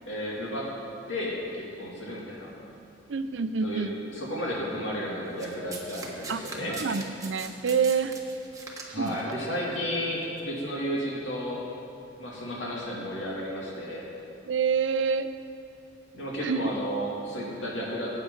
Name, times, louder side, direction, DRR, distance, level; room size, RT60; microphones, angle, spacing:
voice 1, 0.1-0.7 1.1-2.5 3.6-3.9 4.1-6.8 8.9-11.6 12.2-14.1 16.1-18.1, equal, 75° left, -5 dB, 2.7 m, -33 dB
voice 2, 3.1-4.0 6.3-6.4 6.7-8.1 8.9-9.3 14.4-15.3 16.4-16.7, right 5 dB, 70° right, 10 dB, 0.5 m, -27 dB
Domestic sounds home sounds, 5.4-9.3 10.2-10.4, right 3 dB, 20° right, 1.3 m, -41 dB
18.0 x 8.5 x 4.0 m, 2.6 s
head